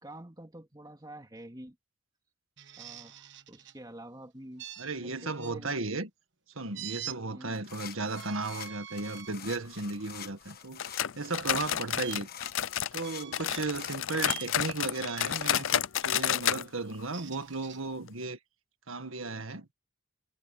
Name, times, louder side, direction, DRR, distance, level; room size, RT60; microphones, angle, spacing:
voice 1, 0.0-1.8 2.8-4.6 4.9-5.8 7.3-7.7, right 1 dB, 20° right, 2.4 m, -47 dB
sound 1, 2.6-3.8 4.6-5.5 6.7-7.2 8.0-9.4 10.0-10.2 12.0-12.2 13.0-13.6 14.2-14.5 14.9-15.4 16.9-17.8, right 11 dB, 60° right, 1.4 m, -44 dB
voice 2, 4.8-6.1 6.6-10.8 11.2-12.3 12.9-18.4 18.9-19.7, right 3 dB, 85° right, 1.8 m, -35 dB
sound 2, 7.5-15.8, left 9 dB, 50° left, 1.3 m, -47 dB
sound 3, 10.8-13.1 13.3-16.6 16.9-17.0 17.4-17.5 18.1-18.2, left 10 dB, 75° left, 0.5 m, -30 dB
head